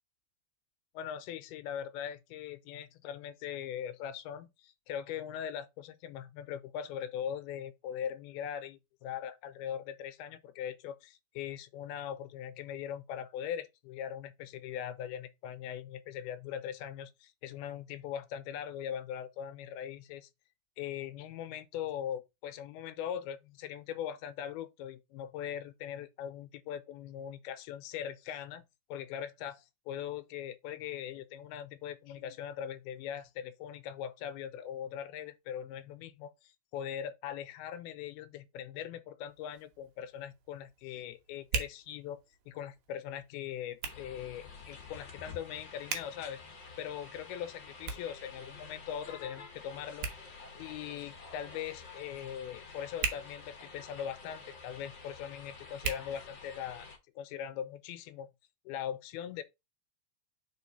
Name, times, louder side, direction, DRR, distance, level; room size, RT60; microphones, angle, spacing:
voice 1, 0.9-20.3 20.8-28.6 28.9-42.2 42.5-46.4 46.8-56.9 57.2-58.3 58.7-59.4, left 9 dB, 85° left, 2.5 m, -41 dB
Hands, 39.3-56.9, right 6 dB, 65° right, 2.7 m, -44 dB
sound 1, 43.8-57.0, left 4 dB, 45° left, 1.6 m, -50 dB
5.1 x 4.5 x 5.3 m
omnidirectional pair, 4.4 m